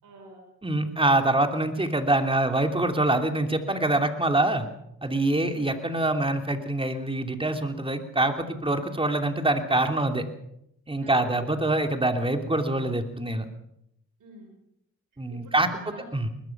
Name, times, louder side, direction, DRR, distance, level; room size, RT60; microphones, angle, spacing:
voice 1, 0.0-0.5 5.4-5.6 11.0-11.5 14.2-14.5 15.3-16.0, right 3 dB, 80° right, 2 dB, 5.5 m, -46 dB
voice 2, 0.6-4.7 5.0-10.3 10.9-13.5 15.2-15.7 16.1-16.3, right 2 dB, 15° right, 6 dB, 2.9 m, -25 dB
21.5 x 20.5 x 6.0 m, 0.77 s
cardioid pair, 75°, 31 cm